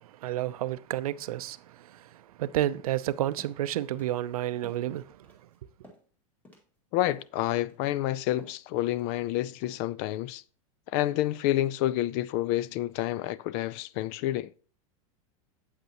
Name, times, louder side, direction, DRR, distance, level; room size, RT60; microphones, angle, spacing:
voice 1, 0.0-5.2, right 13 dB, 85° right, 0.5 m, -31 dB
sound 1, 3.4-3.6 4.0-4.1 4.6-4.9 5.2-5.6 5.8-6.1 6.4-6.7 7.1-7.3 7.7-7.9 8.4-8.6 9.0-9.3 9.6-9.9, left 1 dB, 10° left, 2.1 m, -51 dB
voice 2, 6.9-10.4 10.9-14.5, left 14 dB, 40° left, 0.4 m, -29 dB
8.2 x 8.0 x 2.9 m
supercardioid pair, 140°, 18 cm